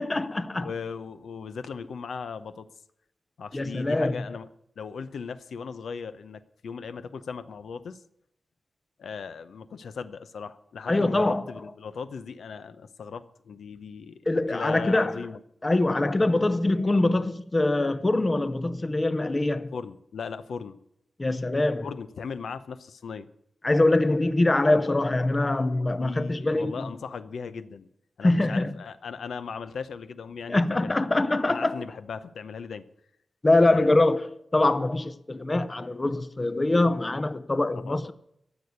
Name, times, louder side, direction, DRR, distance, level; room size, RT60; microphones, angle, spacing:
voice 1, 0.0-0.7 3.5-4.2 10.9-11.4 14.3-15.1 15.6-19.7 21.2-21.9 23.6-26.9 28.2-28.7 30.5-31.8 33.4-38.1, left 2 dB, 20° left, 0.6 m, -23 dB
voice 2, 0.5-2.7 3.4-4.5 4.8-8.0 9.0-15.4 19.7-20.8 21.8-23.3 26.0-27.9 28.2-31.0 31.5-32.8 33.7-34.1 37.7-38.1, left 5 dB, 80° left, 0.7 m, -38 dB
13.5 x 6.9 x 9.4 m
wide cardioid pair, 155°, 0 cm